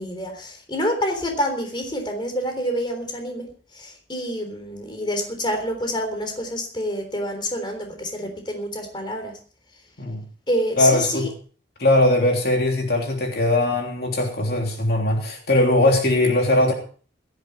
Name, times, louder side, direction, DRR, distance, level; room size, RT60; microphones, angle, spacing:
voice 1, 0.0-3.5 3.7-9.3 10.5-11.3, equal, 25° left, 4 dB, 3.6 m, -27 dB
voice 2, 10.8-11.3 11.8-16.7, left 1 dB, 55° left, 2 dB, 3.3 m, -20 dB
16.5 x 13.5 x 4.6 m, 0.42 s
head